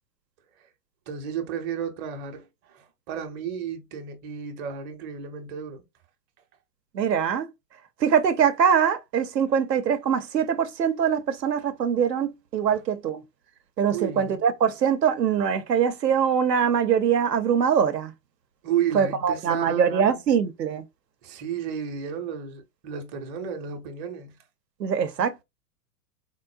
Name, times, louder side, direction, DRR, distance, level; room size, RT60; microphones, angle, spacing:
voice 1, 1.1-5.8 12.7-12.8 13.9-14.4 18.6-19.9 21.2-24.3, right 8 dB, 25° right, 0.5 m, -32 dB
voice 2, 6.9-7.5 8.0-13.2 13.8-18.1 18.9-20.8 24.8-25.4, right 7 dB, 85° right, 0.6 m, -23 dB
3.7 x 2.0 x 2.4 m
figure-of-eight pair, 100°, 48 cm